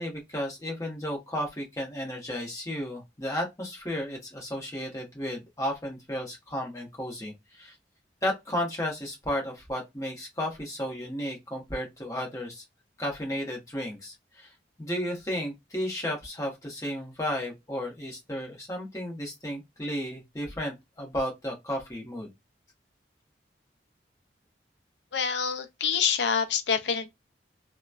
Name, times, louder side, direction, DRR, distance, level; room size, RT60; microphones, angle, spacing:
voice 1, 0.0-7.7 8.2-12.6 13.0-14.5 14.8-22.3, equal, 20° left, 1.0 m, -33 dB
voice 2, 25.1-27.1, left 6 dB, 75° left, 0.5 m, -26 dB
2.9 x 2.2 x 2.4 m
head